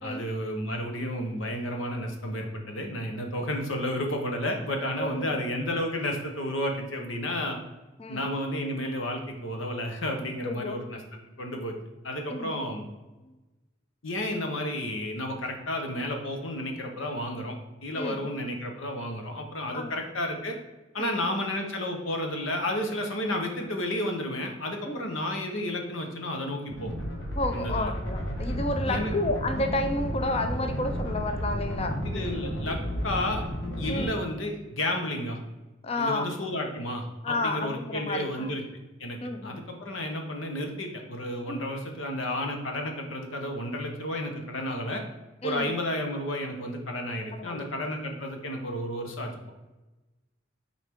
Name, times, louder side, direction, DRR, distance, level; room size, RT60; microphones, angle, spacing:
voice 1, 0.0-7.6 8.1-11.0 11.4-11.8 12.0-12.8 14.0-17.6 17.8-20.6 20.9-26.9 27.5-27.9 28.9-29.1 32.0-33.4 33.8-35.4 36.0-38.6 39.0-45.0 45.4-49.5, left 1 dB, 85° left, 3 dB, 1.2 m, -32 dB
voice 2, 5.0-5.4 8.0-8.2 10.4-10.8 12.3-12.5 13.3-13.4 18.0-18.4 19.7-19.9 21.0-21.3 24.9-25.1 27.3-32.0 32.2-32.4 33.9-34.1 35.8-36.3 37.2-38.5 39.2-39.6 41.5-41.7 45.4-45.7 47.3-47.7, left 2 dB, 30° left, 6 dB, 0.6 m, -31 dB
sound 1, 26.7-34.0, equal, 65° left, 1.6 m, -32 dB
7.8 x 4.6 x 3.7 m, 1.1 s
head